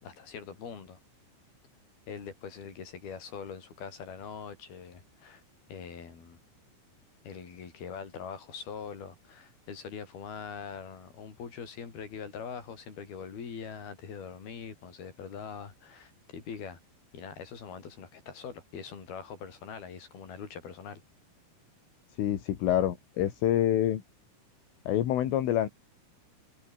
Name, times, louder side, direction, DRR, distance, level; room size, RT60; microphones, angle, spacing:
voice 1, 0.0-1.0 2.1-5.4 5.7-6.4 7.2-16.8 17.1-21.0, left 6 dB, 50° left, 6.4 m, -43 dB
voice 2, 22.2-24.0 24.9-25.7, left 11 dB, 75° left, 4.8 m, -27 dB
omnidirectional pair, 5.8 m